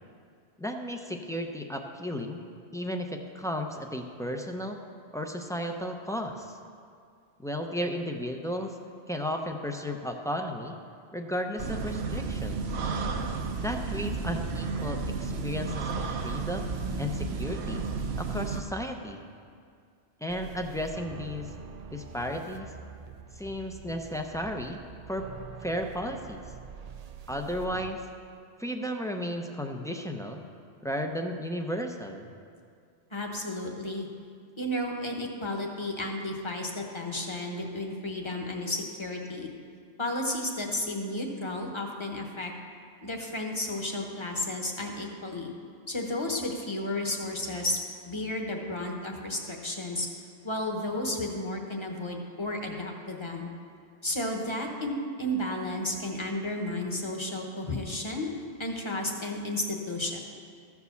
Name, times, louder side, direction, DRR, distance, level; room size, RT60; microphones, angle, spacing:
voice 1, 0.6-2.4 2.7-4.8 5.1-6.6 7.4-8.8 9.1-10.8 11.1-12.6 13.6-16.7 17.0-17.8 18.2-19.2 20.2-21.5 21.9-22.7 23.3-24.8 25.1-25.3 25.6-26.4 27.3-28.0 28.6-30.4 30.8-32.3, equal, 5° left, 3 dB, 0.4 m, -34 dB
sound 1, 11.6-18.6, right 4 dB, 70° right, 1.0 m, -32 dB
sound 2, 20.3-27.9, right 6 dB, 55° right, 0.4 m, -45 dB
voice 2, 33.1-34.1 34.6-39.5 40.0-42.5 43.0-45.5 45.9-47.8 48.0-50.1 50.4-53.5 54.0-58.3 58.6-60.2, left 1 dB, 25° left, 1 dB, 1.1 m, -32 dB
14.0 x 4.7 x 6.9 m, 2.3 s
omnidirectional pair, 1.1 m